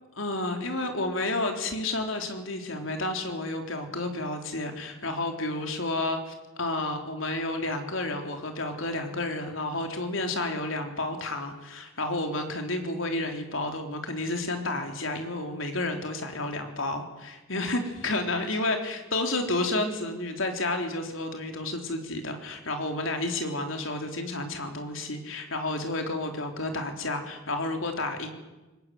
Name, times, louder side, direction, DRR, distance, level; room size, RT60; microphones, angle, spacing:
voice 1, 0.2-28.3, left 2 dB, 75° left, 4 dB, 3.7 m, -31 dB
22.5 x 20.5 x 9.4 m, 1.1 s
head